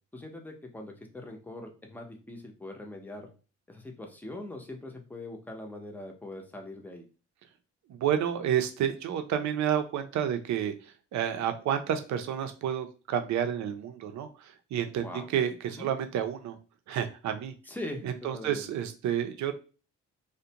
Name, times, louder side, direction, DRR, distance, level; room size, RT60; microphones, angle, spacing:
voice 1, 0.1-3.3 3.7-7.1 15.0-15.3 15.7-15.9 17.7-18.7, left 1 dB, 5° left, 2 dB, 0.6 m, -42 dB
voice 2, 7.9-15.1 15.3-16.6 16.9-17.5 18.0-19.5, right 9 dB, 70° right, 7 dB, 0.5 m, -30 dB
2.4 x 2.1 x 2.8 m, 0.35 s
cardioid pair, 90°, 30 cm